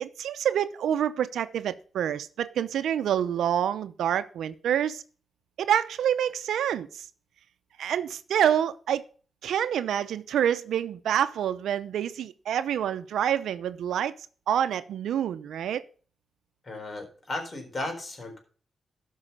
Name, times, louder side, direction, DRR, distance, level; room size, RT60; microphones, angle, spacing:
voice 1, 0.0-5.0 5.6-7.1 7.8-9.0 9.4-14.1 14.5-15.8, right 9 dB, 90° right, 0.6 m, -27 dB
voice 2, 16.6-18.4, left 2 dB, 40° left, 4.1 m, -35 dB
13.0 x 5.6 x 5.4 m
cardioid pair, 80°, 0 cm